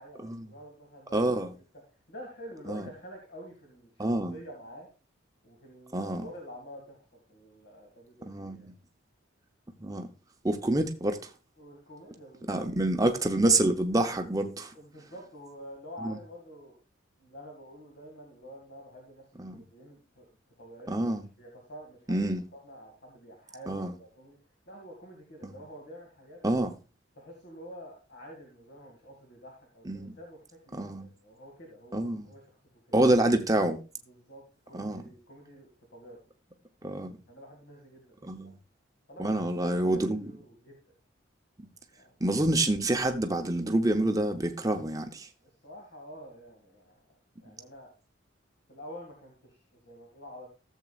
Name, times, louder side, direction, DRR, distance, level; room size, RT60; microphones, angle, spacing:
voice 1, 0.0-4.9 5.4-8.7 11.6-12.6 13.0-13.2 14.7-16.8 17.2-20.3 20.6-20.9 21.4-22.2 22.5-24.4 24.7-26.4 27.1-32.4 34.0-36.2 37.3-38.5 39.1-40.8 41.9-42.2 45.4-47.9 48.7-50.5, equal, 60° left, 2.3 m, -48 dB
voice 2, 1.1-1.5 2.7-2.9 4.0-4.4 5.9-6.3 8.3-8.7 9.8-10.1 10.4-11.2 12.5-14.7 16.0-16.2 19.4-19.5 20.9-21.2 22.1-22.4 23.7-23.9 25.4-25.5 26.4-26.7 29.9-30.2 30.7-31.1 31.9-32.2 32.9-33.8 34.7-35.0 36.8-37.1 38.2-38.5 39.2-40.3 42.2-45.3, right 1 dB, 20° right, 0.8 m, -27 dB
14.0 x 7.5 x 2.5 m
head